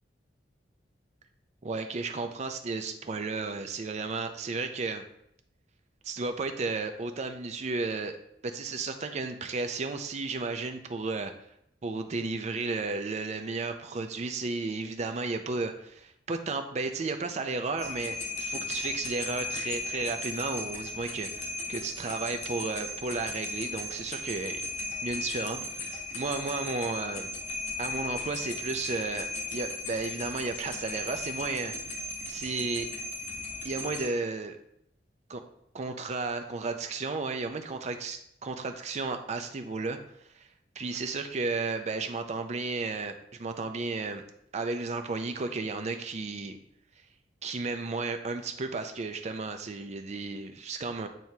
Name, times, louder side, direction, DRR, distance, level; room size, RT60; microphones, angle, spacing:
voice 1, 1.6-5.0 6.0-8.1 8.4-11.3 11.8-24.6 25.0-27.3 27.8-32.0 32.3-32.9 33.6-34.6 35.3-35.4 35.7-40.0 40.3-40.5 40.8-44.2 44.5-46.6 47.4-51.1, right 3 dB, 40° right, 6 dB, 0.4 m, -33 dB
sound 1, 17.8-34.1, left 3 dB, 40° left, 0.9 m, -36 dB
9.0 x 4.5 x 2.8 m, 0.75 s
head